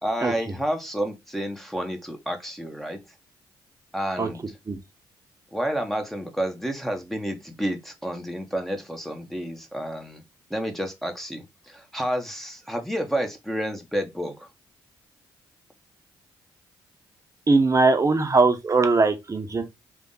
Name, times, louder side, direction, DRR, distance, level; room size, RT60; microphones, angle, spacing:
voice 1, 0.0-3.0 3.9-4.4 5.5-10.2 10.5-14.5, equal, ahead, 1.1 m, -30 dB
voice 2, 17.5-19.6, right 3 dB, 35° right, 1.0 m, -20 dB
3.5 x 2.5 x 3.9 m
supercardioid pair, 55°, 10 cm